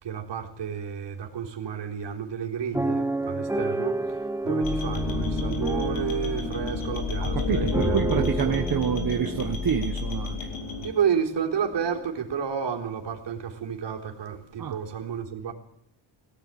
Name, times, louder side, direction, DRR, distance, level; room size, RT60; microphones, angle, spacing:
voice 1, 0.0-4.0 4.4-8.6 10.8-15.5, right 7 dB, 60° right, 2 dB, 3.9 m, -31 dB
sound 1, 2.7-10.8 11.4-11.5 11.8-12.1, right 2 dB, 5° right, 0.8 m, -31 dB
sound 2, 4.6-10.9, left 4 dB, 70° left, 4.1 m, -31 dB
voice 2, 7.2-10.4 14.6-14.8, right 8 dB, 45° right, 5 dB, 1.3 m, -27 dB
23.0 x 16.5 x 9.2 m, 0.70 s
wide cardioid pair, 180°, 48 cm